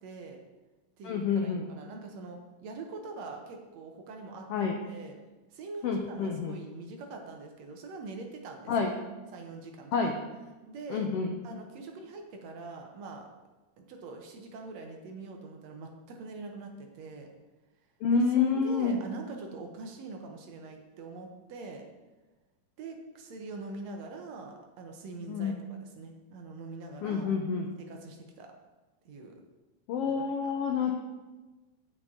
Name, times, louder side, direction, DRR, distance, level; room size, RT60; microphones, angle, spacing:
voice 1, 0.0-0.4 1.0-5.1 5.5-8.9 9.3-9.9 10.7-11.1 11.4-13.3 13.8-17.3 18.4-21.8 22.8-27.3 27.8-28.5 29.1-29.4 30.4-30.5 30.9-31.0, right 3 dB, 65° right, 3 dB, 2.0 m, -43 dB
voice 2, 1.0-1.7 4.5-4.8 5.8-6.6 8.7-9.0 9.9-10.2 10.9-11.3 18.0-19.0 25.3-25.6 27.0-27.7 29.9-30.9, left 5 dB, 90° left, 3 dB, 1.3 m, -28 dB
9.0 x 8.7 x 3.7 m, 1.2 s
omnidirectional pair, 3.6 m